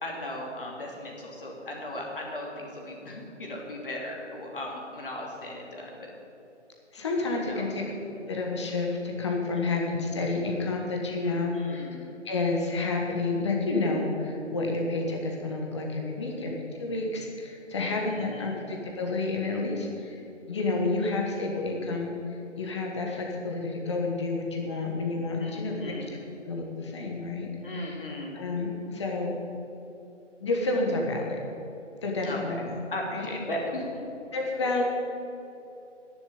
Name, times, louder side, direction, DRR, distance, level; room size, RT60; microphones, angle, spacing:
voice 1, 0.0-6.1 7.3-7.7 11.2-12.0 16.0-16.6 17.8-18.5 25.4-26.1 27.6-28.3 32.2-34.1 34.6-34.8, left 1 dB, 45° left, -1 dB, 2.8 m, -37 dB
voice 2, 6.9-7.8 8.1-11.9 12.2-16.5 16.8-20.2 20.5-26.2 26.4-27.9 28.3-29.3 30.4-31.4 32.0-32.8 33.1-33.3 34.3-34.8, left 3 dB, 25° left, 0 dB, 1.4 m, -30 dB
11.0 x 7.2 x 9.5 m, 2.8 s
figure-of-eight pair, 150°, 37 cm